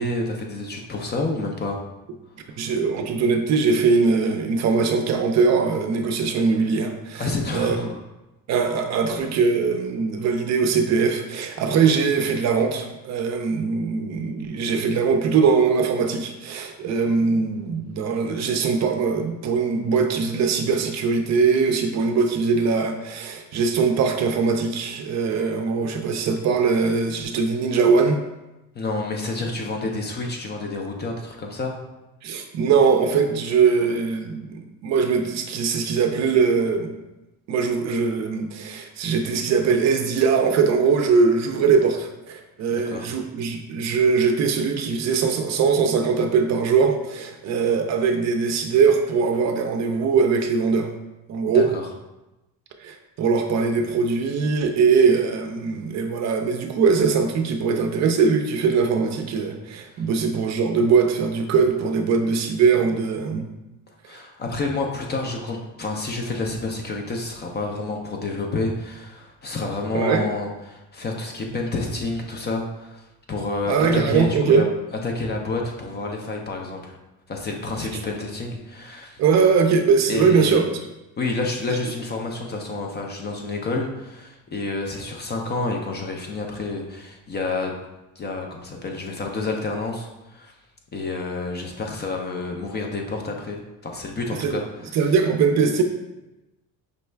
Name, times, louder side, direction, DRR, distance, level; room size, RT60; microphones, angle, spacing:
voice 1, 0.0-1.8 2.6-2.7 7.2-8.0 28.8-31.8 42.7-43.1 51.5-51.9 64.0-74.6 75.0-76.9 77.3-79.2 80.1-80.7 81.2-87.7 88.2-90.5 90.9-95.0, left 3 dB, 30° left, 1 dB, 0.4 m, -29 dB
voice 2, 2.6-7.8 8.5-28.2 32.2-37.0 37.5-50.9 51.3-51.7 52.8-63.5 64.1-64.2 69.9-70.3 73.6-74.7 79.2-80.7 94.3-94.6 94.9-95.8, right 5 dB, 50° right, 5 dB, 0.5 m, -21 dB
5.1 x 2.3 x 3.2 m, 0.99 s
cardioid pair, 145°, 36 cm